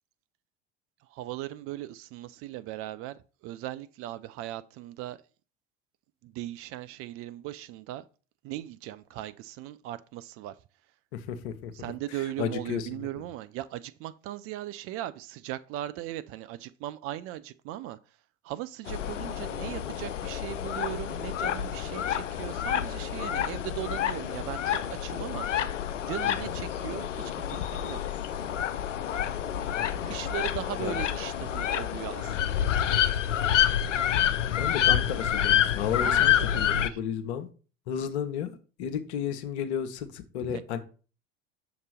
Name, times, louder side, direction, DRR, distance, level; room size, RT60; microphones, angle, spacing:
voice 1, 1.1-5.2 6.2-8.1 8.4-10.5 11.7-18.0 18.4-25.5 26.0-28.0 30.0-32.7 36.0-36.3 36.6-37.0 40.4-40.6, right 14 dB, 40° right, 0.4 m, -38 dB
voice 2, 11.1-11.9 12.4-13.1 26.3-26.5 29.7-30.2 30.8-31.0 34.6-37.5 37.9-40.8, left 8 dB, 65° left, 1.0 m, -33 dB
sound 1, 18.9-36.9, left 10 dB, 85° left, 0.5 m, -28 dB
6.5 x 2.9 x 5.0 m
figure-of-eight pair, 70°, 36 cm